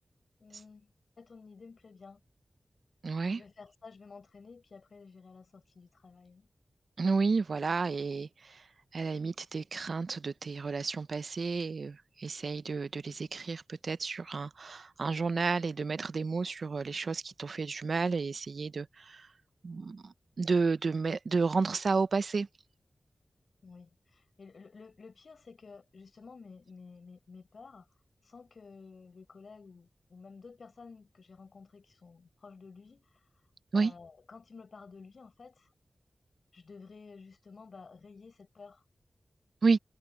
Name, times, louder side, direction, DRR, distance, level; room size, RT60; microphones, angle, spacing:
voice 1, 0.4-0.9 1.2-2.2 3.2-6.5 23.6-27.9 28.2-33.2 33.7-35.7 36.5-38.8, left 4 dB, 70° left, 6.7 m, -52 dB
voice 2, 3.0-3.4 7.0-8.6 8.9-19.3 19.6-22.5 33.7-33.9 39.6-39.8, right 4 dB, 70° right, 0.6 m, -31 dB
wide cardioid pair, 95°, 0 cm